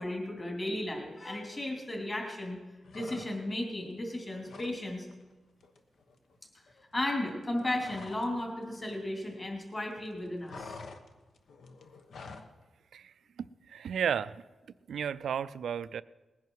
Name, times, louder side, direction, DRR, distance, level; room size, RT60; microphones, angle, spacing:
voice 1, 0.0-2.6 2.9-5.1 6.9-10.8, left 1 dB, 25° left, 1 dB, 3.0 m, -35 dB
sound 1, 2.8-3.7 4.0-4.8 5.1-5.3 5.6-8.4 8.6-9.7 10.0-12.5, left 4 dB, 75° left, 1.1 m, -48 dB
voice 2, 12.9-14.4 14.9-16.0, right 8 dB, 85° right, 16 dB, 0.4 m, -34 dB
19.5 x 10.5 x 4.7 m, 1.2 s
wide cardioid pair, 135°, 0 cm